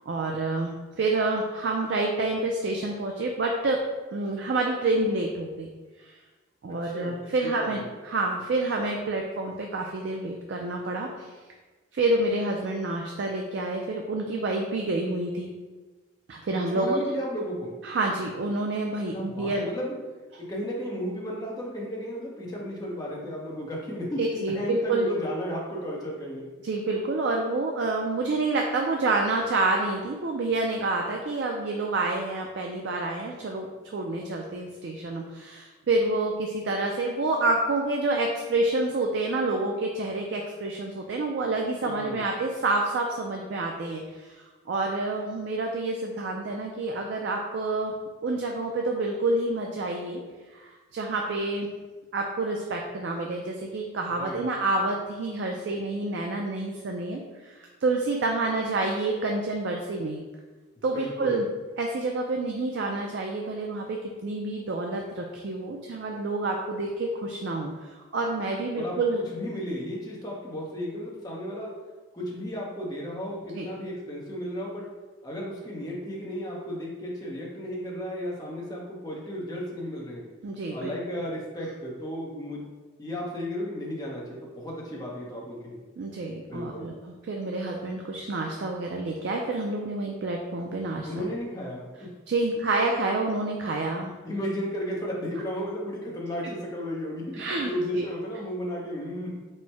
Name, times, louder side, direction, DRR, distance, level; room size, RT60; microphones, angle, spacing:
voice 1, 0.1-3.8 4.1-5.7 6.0-6.1 6.6-11.4 11.9-15.5 16.3-17.1 17.8-19.7 24.2-25.1 26.6-47.9 48.2-50.2 50.5-51.7 52.1-60.2 60.8-61.4 61.8-69.2 73.5-73.7 80.4-80.9 86.0-86.9 87.3-91.3 92.3-94.1 97.4-98.0, right 2 dB, 65° right, 1 dB, 0.4 m, -28 dB
voice 2, 6.7-7.9 16.7-17.7 19.1-20.0 20.4-26.5 41.8-42.2 54.2-54.4 60.8-61.5 68.7-68.9 69.3-71.7 72.1-74.8 75.2-80.3 80.7-82.6 83.0-85.8 86.5-86.9 91.0-92.1 94.2-99.3, equal, 20° left, -3 dB, 0.7 m, -34 dB
4.3 x 2.1 x 4.5 m, 1.3 s
head